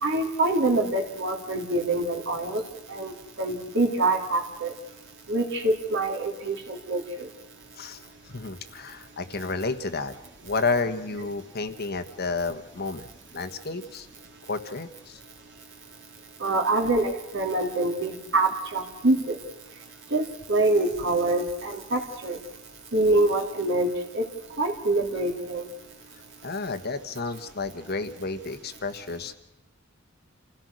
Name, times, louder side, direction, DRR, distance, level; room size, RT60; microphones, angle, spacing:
voice 1, 0.0-2.6 2.9-4.7 5.3-7.3 16.4-19.4 20.1-20.2 20.5-22.4 22.9-24.2 24.6-25.7, right 2 dB, 65° right, 3 dB, 3.5 m, -25 dB
voice 2, 8.3-10.1 10.4-14.1 14.4-15.2 26.4-29.3, left 3 dB, 50° left, 8 dB, 1.4 m, -31 dB
28.0 x 16.5 x 6.4 m, 0.92 s
head